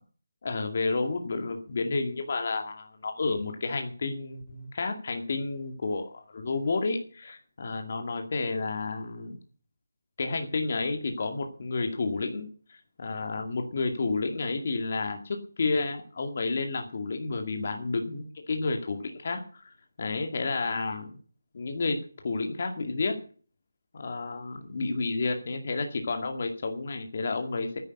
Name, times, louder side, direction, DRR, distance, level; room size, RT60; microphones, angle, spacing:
voice 1, 0.4-9.4 10.2-21.2 21.5-23.2 23.9-27.8, left 3 dB, 30° left, 5 dB, 2.2 m, -31 dB
10.5 x 9.1 x 9.7 m, 0.42 s
figure-of-eight pair, 180°, 0 cm